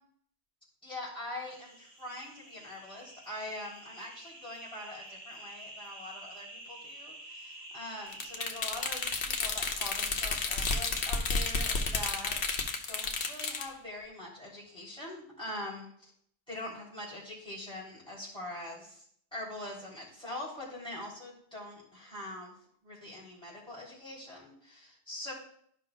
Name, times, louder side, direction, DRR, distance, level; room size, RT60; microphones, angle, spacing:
voice 1, 0.8-12.4 12.9-16.1 16.5-19.0 19.3-22.5 22.8-25.3, left 1 dB, 5° left, -7 dB, 3.5 m, -43 dB
sound 1, 1.5-10.0, right 1 dB, 75° right, 1.8 m, -49 dB
sound 2, 8.1-13.7, left 4 dB, 75° left, 1.1 m, -32 dB
12.5 x 5.5 x 2.5 m, 0.64 s
omnidirectional pair, 1.1 m